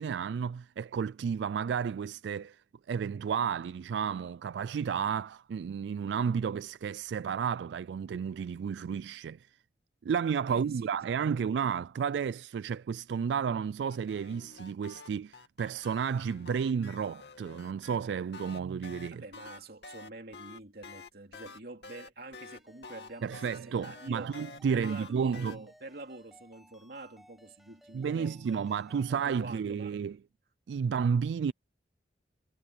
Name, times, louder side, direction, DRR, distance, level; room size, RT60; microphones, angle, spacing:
voice 1, 0.0-2.6 2.9-9.5 10.0-19.2 23.2-25.5 27.9-30.2 30.7-31.5, right 6 dB, 80° right, 0.3 m, -32 dB
voice 2, 10.5-11.4 19.1-24.3 24.7-28.6 29.1-30.0, right 2 dB, 60° right, 2.8 m, -46 dB
sound 1, 13.9-18.0 18.3-25.6, left 4 dB, 75° left, 2.5 m, -48 dB
Ringtone, 22.4-29.3, equal, ahead, 5.3 m, -60 dB
head